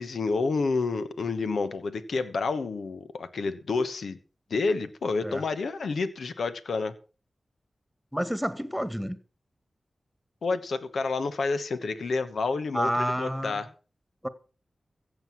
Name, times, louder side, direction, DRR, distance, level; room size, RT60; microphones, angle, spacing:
voice 1, 0.0-4.2 4.5-6.9 10.4-13.7, left 4 dB, 90° left, 1.1 m, -29 dB
voice 2, 8.1-9.2 12.7-13.6 14.2-14.3, equal, ahead, 2.0 m, -29 dB
15.5 x 8.0 x 5.9 m
cardioid pair, 50°, 0 cm